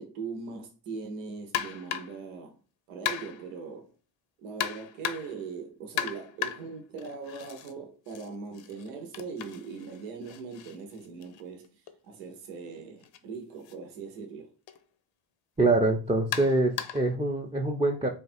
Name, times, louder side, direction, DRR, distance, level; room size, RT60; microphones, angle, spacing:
voice 1, 0.0-2.6 2.9-3.9 4.4-14.5, right 4 dB, 85° right, 0.8 m, -40 dB
sound 1, 1.5-2.2 3.1-3.5 4.6-5.4 6.0-7.7 8.1-11.9 13.0-13.2 13.6-13.7 14.7-14.8 16.3-17.1, left 10 dB, 65° left, 0.7 m, -36 dB
voice 2, 15.6-18.1, right 2 dB, 15° right, 0.6 m, -25 dB
3.4 x 2.3 x 4.2 m
supercardioid pair, 60°, 48 cm